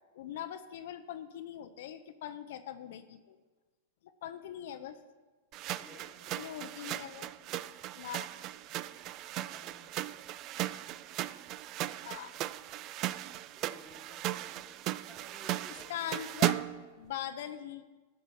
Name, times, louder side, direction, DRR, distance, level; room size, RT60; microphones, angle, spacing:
voice 1, 0.1-3.4 4.0-5.0 6.4-7.3 8.0-8.3 11.9-12.3 15.9-16.6 17.0-17.8, left 10 dB, 70° left, 9 dB, 0.6 m, -41 dB
voice 2, 4.4-5.0 5.8-6.4 9.4-10.1 13.5-16.1, left 1 dB, 5° right, 0 dB, 1.9 m, -57 dB
sound 1, 5.5-16.9, right 14 dB, 40° right, 0.3 m, -37 dB
13.5 x 5.5 x 6.0 m, 1.3 s
hypercardioid pair, 135°, 0 cm